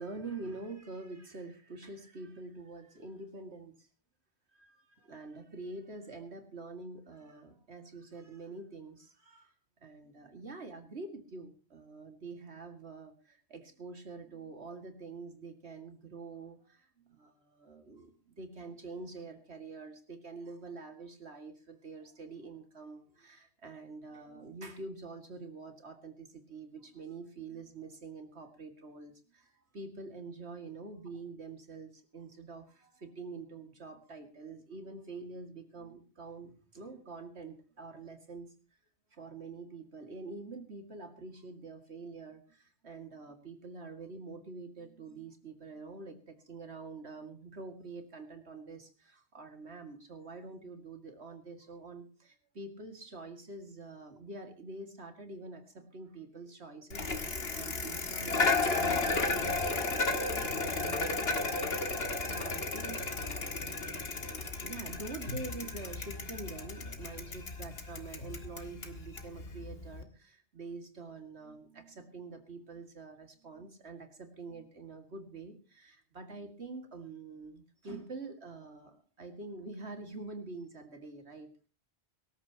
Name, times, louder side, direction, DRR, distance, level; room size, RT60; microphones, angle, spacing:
voice 1, 0.0-3.9 4.5-9.5 9.8-38.5 39.1-81.7, right 3 dB, 75° right, 7 dB, 2.4 m, -46 dB
Bicycle, 56.9-70.0, left 3 dB, 65° left, 2.0 m, -34 dB
24.5 x 13.0 x 2.9 m, 0.35 s
omnidirectional pair, 1.1 m